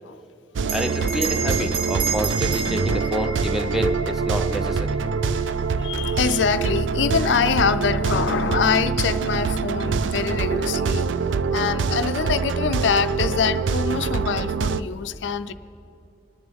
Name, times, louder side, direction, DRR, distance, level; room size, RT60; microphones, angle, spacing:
Bell, 0.6-5.5, right 5 dB, 55° right, 1.0 m, -31 dB
sound 1, 0.6-14.8, right 5 dB, 80° right, 0.4 m, -24 dB
voice 1, 0.7-5.0, equal, ahead, 0.6 m, -28 dB
voice 2, 5.8-11.1 11.5-15.5, left 6 dB, 70° left, 0.4 m, -24 dB
26.5 x 9.7 x 3.5 m
head